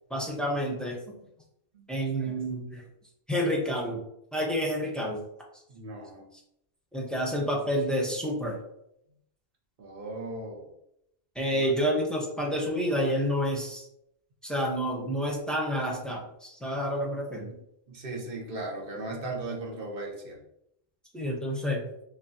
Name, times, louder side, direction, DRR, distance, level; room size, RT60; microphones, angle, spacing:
voice 1, 0.1-1.1 1.9-2.8 3.3-4.0 4.3-5.2 6.9-8.6 11.4-13.8 14.4-17.6 21.1-21.8, equal, ahead, -2 dB, 0.6 m, -29 dB
voice 2, 5.7-6.3 9.8-10.7 11.5-11.7 17.9-20.4, right 2 dB, 55° right, -1 dB, 1.1 m, -37 dB
5.4 x 2.3 x 2.7 m, 0.79 s
omnidirectional pair, 1.1 m